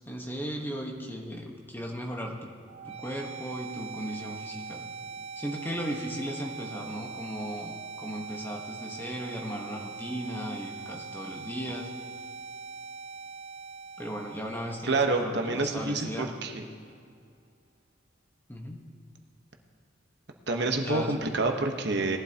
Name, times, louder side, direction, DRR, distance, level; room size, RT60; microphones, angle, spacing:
voice 1, 0.1-2.5 2.8-4.8 5.4-11.9 14.0-16.3 18.5-18.8 20.8-21.2, equal, 10° left, 0 dB, 1.2 m, -36 dB
sound 1, 2.7-16.6, right 5 dB, 30° right, 0.3 m, -42 dB
voice 2, 14.8-16.6 20.5-22.2, right 3 dB, 60° right, 3 dB, 1.1 m, -28 dB
19.5 x 11.5 x 2.9 m, 2.3 s
head